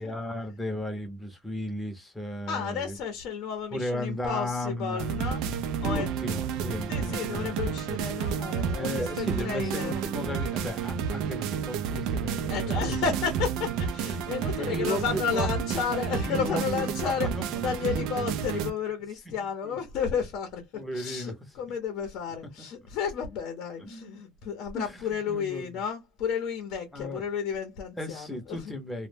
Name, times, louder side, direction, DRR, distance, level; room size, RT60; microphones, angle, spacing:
voice 1, 0.0-3.0 3.7-5.1 5.8-7.6 8.7-12.9 14.6-15.5 16.2-17.4 17.9-18.1 18.5-18.7 19.6-19.8 20.7-21.3 23.8-24.2 24.7-25.0 25.3-25.7 26.9-27.2 28.0-29.1, left 1 dB, 5° left, 0.7 m, -35 dB
voice 2, 2.5-5.5 5.8-6.1 6.9-10.0 12.5-17.3 17.6-28.7, left 7 dB, 60° left, 0.7 m, -32 dB
sound 1, 5.0-18.7, right 7 dB, 65° right, 0.4 m, -31 dB
2.1 x 2.1 x 3.2 m
cardioid pair, 140°, 0 cm